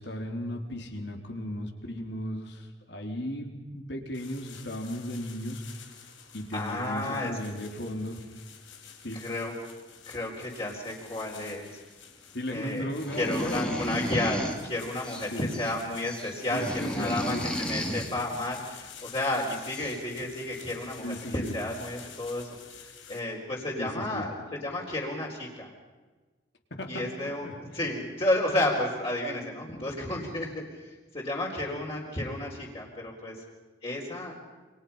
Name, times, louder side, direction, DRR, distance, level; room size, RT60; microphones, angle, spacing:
voice 1, 0.0-5.6 6.3-8.2 9.0-9.2 12.3-14.0 15.3-15.5 16.5-17.4 21.0-21.5 23.8-24.2 26.7-27.5, equal, 60° left, 3 dB, 3.9 m, -36 dB
sound 1, 4.1-23.2, left 7 dB, 85° left, 4.1 m, -49 dB
voice 2, 6.5-7.3 9.2-9.5 10.1-11.8 12.5-12.9 13.1-22.5 22.7-25.7 26.9-27.5 27.7-30.5 31.1-33.3 33.8-34.4, left 1 dB, 30° left, -4 dB, 4.4 m, -32 dB
sound 2, 13.0-14.6 15.0-15.7 16.0-18.1 19.3-19.4 19.7-20.0, equal, 5° left, 2.4 m, -33 dB
29.0 x 26.5 x 5.8 m, 1.3 s
head